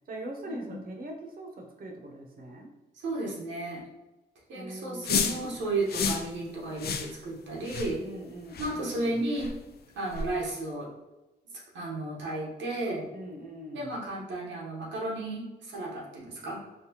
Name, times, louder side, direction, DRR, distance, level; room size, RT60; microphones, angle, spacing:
voice 1, 0.1-2.7 4.5-5.5 8.0-9.2 13.1-14.0, right 1 dB, 50° right, 1 dB, 0.8 m, -42 dB
voice 2, 3.0-3.9 4.5-8.0 8.6-9.5 10.0-10.9 11.5-13.1 13.7-16.6, right 2 dB, 85° right, -3 dB, 1.0 m, -33 dB
sound 1, 5.0-5.4 5.9-6.3 6.8-7.1 7.6-7.9 8.5-8.7 9.4-9.5 10.1-10.3, left 5 dB, 60° left, 0.4 m, -30 dB
4.1 x 2.4 x 2.8 m, 1.0 s
cardioid pair, 60°, 19 cm